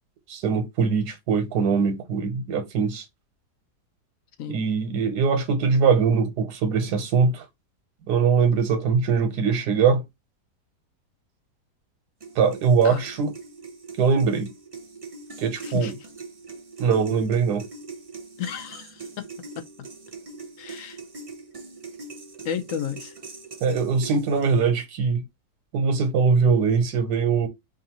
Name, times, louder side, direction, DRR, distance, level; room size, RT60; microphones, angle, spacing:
voice 1, 0.3-3.0 4.5-7.4 8.1-10.0 12.3-13.3 14.0-14.5 15.4-15.9 16.8-17.7 23.6-25.2 25.7-27.5, right 5 dB, 75° right, 1.4 m, -22 dB
sound 1, 12.2-24.8, right 3 dB, 50° right, 0.4 m, -42 dB
voice 2, 18.4-19.3 19.6-19.9 20.6-21.0 22.4-23.1, left 8 dB, 70° left, 0.8 m, -33 dB
4.7 x 2.5 x 2.9 m
omnidirectional pair, 1.8 m